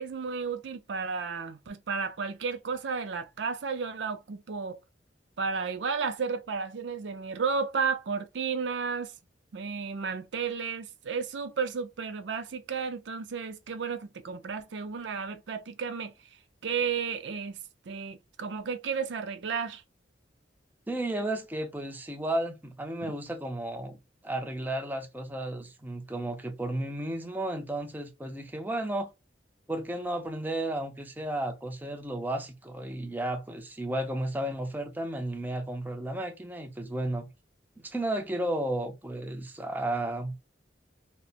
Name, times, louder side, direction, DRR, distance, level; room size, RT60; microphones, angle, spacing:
voice 1, 0.0-4.8 5.4-9.1 9.5-16.1 16.6-17.6 17.9-19.8, right 5 dB, 75° right, 0.5 m, -33 dB
voice 2, 20.9-24.0 24.2-29.1 29.7-37.3 37.8-40.4, right 1 dB, 10° right, 0.6 m, -33 dB
4.2 x 2.1 x 2.4 m
head